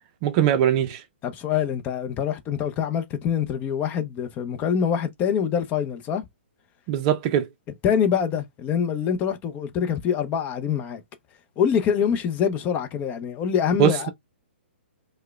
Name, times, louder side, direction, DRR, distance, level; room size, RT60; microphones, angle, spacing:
voice 1, 0.2-1.0 6.9-7.5 13.8-14.1, right 10 dB, 35° right, 0.5 m, -21 dB
voice 2, 1.2-6.3 7.8-11.0 11.6-14.1, left 8 dB, 25° left, 0.6 m, -25 dB
4.6 x 2.1 x 2.2 m
hypercardioid pair, 140°, 6 cm